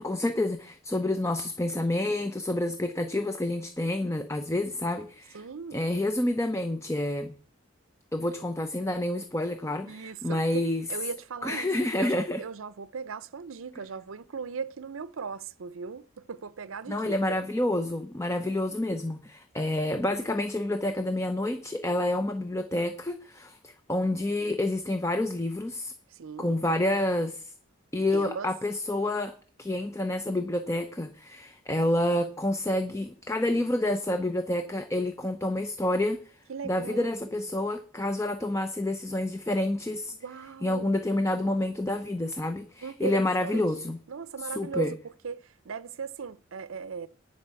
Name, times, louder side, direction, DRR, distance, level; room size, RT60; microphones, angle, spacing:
voice 1, 0.0-5.4 5.7-7.3 8.1-10.8 11.4-12.4 16.9-25.9 26.4-27.5 27.9-29.3 29.6-36.4 36.6-40.1 40.6-44.0 44.4-44.9, left 1 dB, 15° left, 0.7 m, -28 dB
voice 2, 5.3-5.8 9.8-11.7 12.0-17.4 26.1-26.6 28.1-28.6 36.5-37.5 40.1-41.2 42.8-47.1, right 5 dB, 80° right, 0.6 m, -38 dB
11.0 x 5.3 x 8.1 m
head